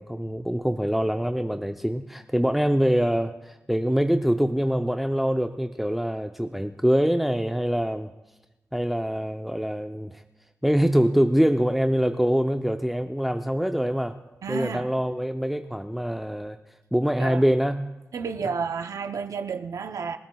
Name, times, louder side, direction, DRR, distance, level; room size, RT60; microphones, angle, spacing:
voice 1, 0.0-8.1 8.7-10.2 10.6-14.2 14.5-16.6 16.9-17.9, equal, 5° right, 0.6 m, -24 dB
voice 2, 14.4-14.9 17.2-17.4 18.1-20.2, right 5 dB, 85° right, 0.7 m, -31 dB
26.0 x 13.0 x 2.3 m
cardioid pair, 55°, 6 cm